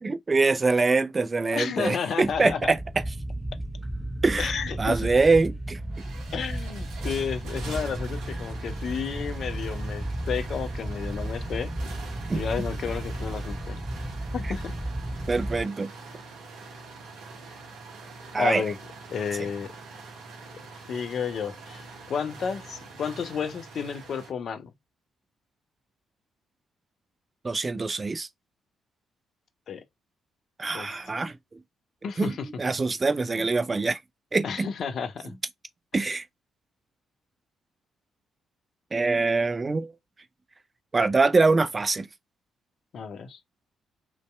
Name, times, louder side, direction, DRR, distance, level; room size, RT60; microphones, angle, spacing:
voice 1, 0.0-2.8 4.2-4.5 4.8-5.8 12.3-12.4 15.3-15.9 18.3-18.6 27.4-28.3 30.6-31.3 32.2-32.3 32.6-34.0 34.3-34.7 35.9-36.2 38.9-39.9 40.9-42.1, right 3 dB, 30° right, 0.4 m, -24 dB
voice 2, 1.5-2.7 4.4-5.1 6.3-11.7 12.3-13.8 14.3-14.8 18.4-18.8 19.1-19.7 20.9-24.7 29.7-29.8 30.7-30.9 32.0-32.5 34.4-35.3 42.9-43.4, left 6 dB, 55° left, 0.4 m, -32 dB
sound 1, 2.2-15.6, right 1 dB, 10° right, 1.0 m, -34 dB
sound 2, 5.4-5.5 5.8-24.3, right 3 dB, 65° right, 0.8 m, -44 dB
2.6 x 2.2 x 2.2 m
figure-of-eight pair, 40°, 0 cm